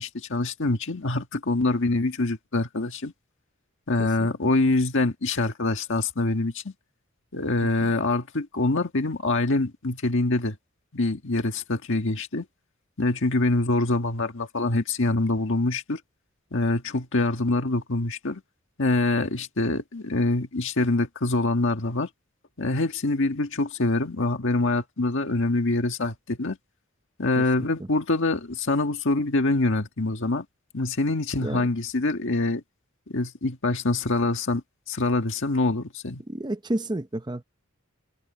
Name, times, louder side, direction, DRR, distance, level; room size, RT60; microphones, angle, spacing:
voice 1, 0.0-3.1 3.9-6.7 7.3-10.5 10.9-12.4 13.0-16.0 16.5-18.4 18.8-22.1 22.6-26.6 27.2-30.4 30.7-32.6 33.1-34.6 34.9-36.2, left 2 dB, 60° left, 1.7 m, -25 dB
voice 2, 36.3-37.4, right 1 dB, 20° right, 0.8 m, -31 dB
head